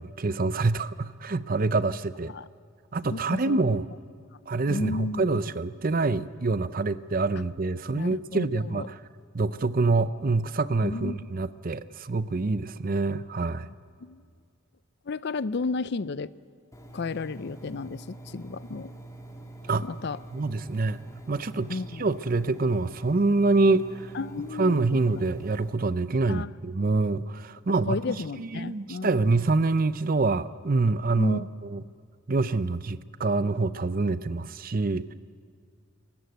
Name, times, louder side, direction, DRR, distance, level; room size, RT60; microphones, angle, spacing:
voice 1, 0.0-2.3 2.9-3.8 4.5-9.0 9.3-13.7 19.7-19.9 20.3-21.0 21.3-24.1 24.6-28.0 28.4-31.4 31.7-31.8 32.3-35.1, right 3 dB, 45° right, 15 dB, 0.6 m, -26 dB
voice 2, 3.1-3.6 4.7-5.4 7.9-8.9 10.8-11.2 14.0-14.2 15.1-16.3 16.9-18.9 19.8-20.2 21.7-22.1 24.1-24.8 26.3-26.5 27.9-29.3 31.2-31.5, left 3 dB, 55° left, 17 dB, 0.5 m, -33 dB
Engine, 16.7-25.7, right 2 dB, 15° left, 2.2 m, -45 dB
28.5 x 15.0 x 8.0 m, 2.2 s
head